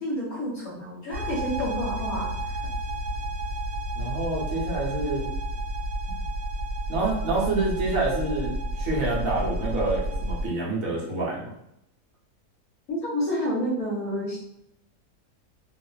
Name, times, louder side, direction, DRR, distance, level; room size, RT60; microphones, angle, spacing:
voice 1, 0.0-2.3 12.9-14.4, equal, 60° left, -7 dB, 1.0 m, -29 dB
sound 1, 1.1-10.5, right 1 dB, 90° right, 1.3 m, -31 dB
voice 2, 3.9-5.3 6.9-11.5, right 2 dB, 65° right, -4 dB, 1.1 m, -27 dB
3.0 x 2.0 x 2.3 m, 0.79 s
omnidirectional pair, 1.7 m